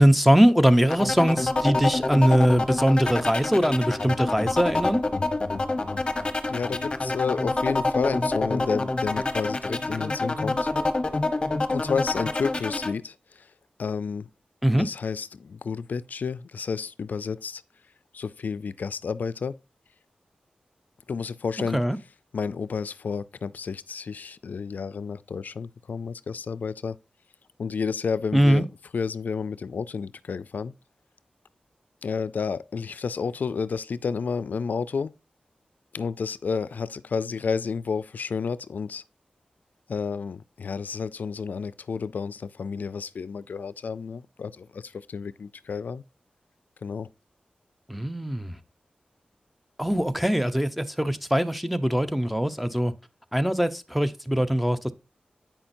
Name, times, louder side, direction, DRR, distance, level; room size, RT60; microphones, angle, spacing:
voice 1, 0.0-5.0 14.6-14.9 21.7-22.0 28.3-28.6 47.9-48.5 49.8-52.9 53.3-54.9, equal, ahead, 0.7 m, -21 dB
sound 1, 0.9-12.9, left 2 dB, 35° left, 0.9 m, -27 dB
voice 2, 6.5-10.7 11.7-13.5 13.8-14.3 14.7-17.6 18.1-19.6 21.1-21.8 22.3-27.0 27.6-28.7 28.9-30.7 32.0-35.1 35.9-39.0 39.9-46.0 46.8-47.1, left 5 dB, 75° left, 0.3 m, -31 dB
8.8 x 5.7 x 2.6 m
wide cardioid pair, 75°, 3 cm